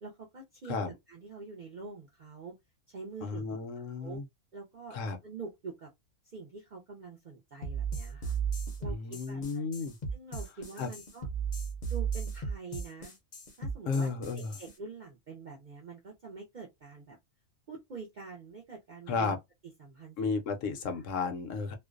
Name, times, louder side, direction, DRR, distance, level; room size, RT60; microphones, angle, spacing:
voice 1, 0.0-2.6 2.9-4.2 4.5-5.0 5.2-5.9 6.2-8.4 8.8-9.6 10.1-11.3 11.9-13.2 13.6-14.1 14.6-17.2 17.7-19.3 19.8-20.3 21.0-21.1, right 4 dB, 60° right, 0.5 m, -45 dB
voice 2, 3.2-4.2 4.9-5.2 8.9-10.0 10.8-10.9 13.9-14.5 19.1-19.4 20.2-21.8, left 4 dB, 70° left, 0.9 m, -33 dB
sound 1, 7.6-14.7, right 6 dB, 45° left, 0.6 m, -35 dB
2.5 x 2.1 x 2.4 m
omnidirectional pair, 1.4 m